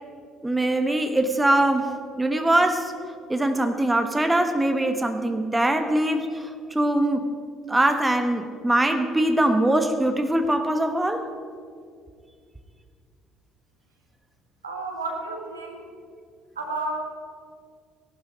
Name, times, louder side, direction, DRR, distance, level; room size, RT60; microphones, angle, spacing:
voice 1, 0.4-2.9 3.3-7.3 7.7-11.3, right 1 dB, 10° right, 7 dB, 1.2 m, -22 dB
voice 2, 14.6-15.9 16.5-17.1, right 2 dB, 80° right, 1 dB, 1.7 m, -31 dB
18.0 x 11.5 x 5.0 m, 2.2 s
figure-of-eight pair, 50°, 0 cm